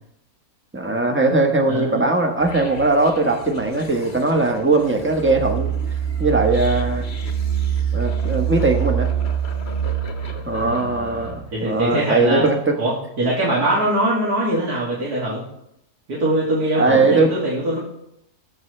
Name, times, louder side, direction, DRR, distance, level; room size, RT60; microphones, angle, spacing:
voice 1, 0.7-5.7 6.2-7.0 7.9-9.1 10.4-12.7 16.7-17.3, right 2 dB, 10° right, 3 dB, 1.0 m, -19 dB
voice 2, 1.7-2.1 10.5-12.4 12.8-15.4 16.1-17.8, right 1 dB, 80° right, -6 dB, 3.0 m, -22 dB
sound 1, 2.4-11.6, right 8 dB, 45° left, 1.3 m, -26 dB
18.5 x 7.3 x 3.3 m, 0.78 s
omnidirectional pair, 1.6 m